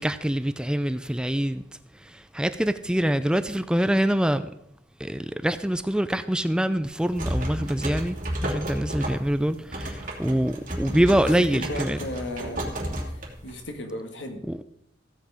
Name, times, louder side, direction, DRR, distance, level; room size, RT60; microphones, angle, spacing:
voice 1, 0.0-1.6 1.9-4.5 5.0-12.0 14.5-14.6, right 1 dB, 5° right, 0.4 m, -25 dB
sound 1, 6.8-13.7, equal, 45° right, 2.6 m, -32 dB
voice 2, 10.8-12.7 13.0-14.4, left 1 dB, 75° left, 2.0 m, -36 dB
15.5 x 8.3 x 4.9 m
head